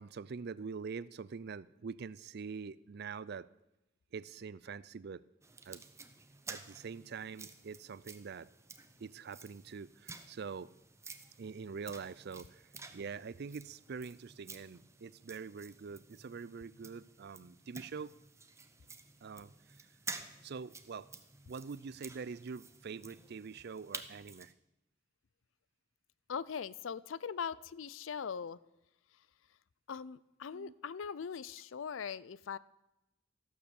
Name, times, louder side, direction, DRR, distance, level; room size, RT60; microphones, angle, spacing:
voice 1, 0.0-3.5 4.1-5.2 5.7-5.8 6.5-8.5 9.0-10.7 11.4-18.2 19.2-19.9 20.4-21.1 21.5-24.5 30.5-30.7, right 5 dB, 55° right, 19 dB, 0.5 m, -45 dB
sound 1, 5.4-24.5, right 4 dB, 15° right, 0.8 m, -51 dB
voice 2, 26.3-28.6 29.9-32.6, left 6 dB, 90° left, 20 dB, 0.5 m, -41 dB
13.5 x 12.0 x 7.0 m, 0.94 s
head